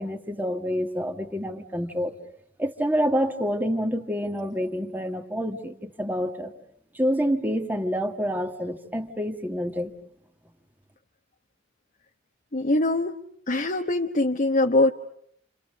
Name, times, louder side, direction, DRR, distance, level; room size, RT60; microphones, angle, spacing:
voice 1, 0.0-2.2 2.6-6.5 6.9-10.0, equal, 10° right, 5 dB, 1.8 m, -27 dB
voice 2, 12.5-13.2 13.5-14.9, left 2 dB, 45° left, 4 dB, 1.1 m, -22 dB
29.5 x 28.0 x 6.6 m, 0.67 s
head